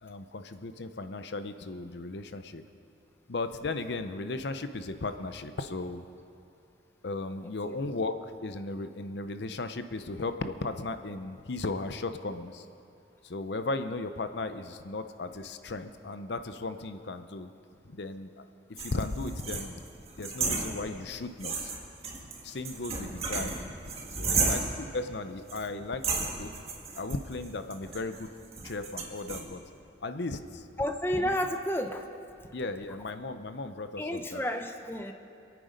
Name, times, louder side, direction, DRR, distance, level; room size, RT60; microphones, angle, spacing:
voice 1, 0.0-2.6 3.3-6.0 7.0-8.1 8.4-12.7 13.2-17.5 17.8-18.4 18.7-19.8 20.2-21.7 22.4-23.5 24.1-26.5 27.0-28.3 28.6-29.6 30.0-30.7 31.2-31.3 32.5-34.4, left 3 dB, 65° left, 9 dB, 0.7 m, -36 dB
sound 1, 18.8-21.1 21.4-24.9 25.5-25.6 26.0-29.4, right 4 dB, 30° right, 1.8 m, -34 dB
voice 2, 24.2-24.5 30.8-32.0 34.0-35.1, equal, 10° left, 6 dB, 0.6 m, -31 dB
27.0 x 9.3 x 5.2 m, 2.5 s
head